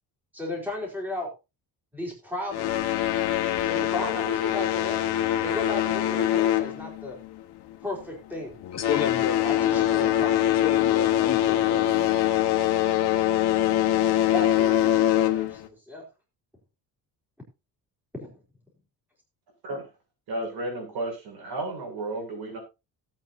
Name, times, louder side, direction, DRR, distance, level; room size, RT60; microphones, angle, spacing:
voice 1, 0.3-1.3 1.9-2.8 3.6-5.0 5.4-7.2 7.8-8.6 9.4-10.3 14.3-16.0 18.2-18.3, left 2 dB, 5° right, 4.5 m, -34 dB
sound 1, 2.5-7.4 7.7-8.0 8.6-15.7, left 12 dB, 80° left, 1.6 m, -23 dB
voice 2, 8.7-9.9 10.4-12.2, left 8 dB, 40° left, 1.3 m, -32 dB
voice 3, 20.3-22.6, right 2 dB, 70° right, 7.5 m, -33 dB
18.0 x 8.7 x 2.8 m
cardioid pair, 170°, 39 cm